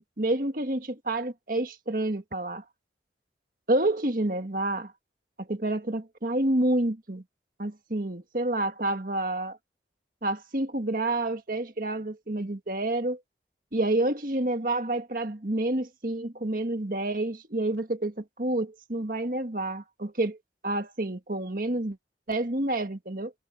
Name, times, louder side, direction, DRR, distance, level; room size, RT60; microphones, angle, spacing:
voice 1, 0.2-2.6 3.7-4.9 5.4-7.2 7.6-9.6 10.2-13.2 13.7-20.4 20.6-22.0 22.3-23.3, right 1 dB, 50° right, 1.8 m, -28 dB
head